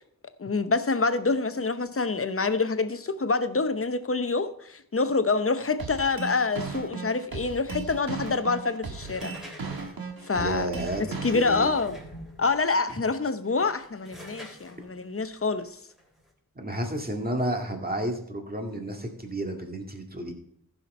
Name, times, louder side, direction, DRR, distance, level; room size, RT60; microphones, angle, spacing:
voice 1, 0.4-9.3 10.3-10.7 11.2-12.0 12.4-15.7, left 4 dB, 35° left, 0.8 m, -26 dB
sound 1, 5.8-11.8, right 4 dB, 70° right, 1.4 m, -36 dB
sound 2, 9.0-12.6 13.3-16.3, equal, ahead, 3.3 m, -47 dB
voice 2, 10.4-11.7 16.6-20.3, right 1 dB, 25° right, 2.0 m, -31 dB
14.5 x 5.9 x 4.3 m
cardioid pair, 55°, 37 cm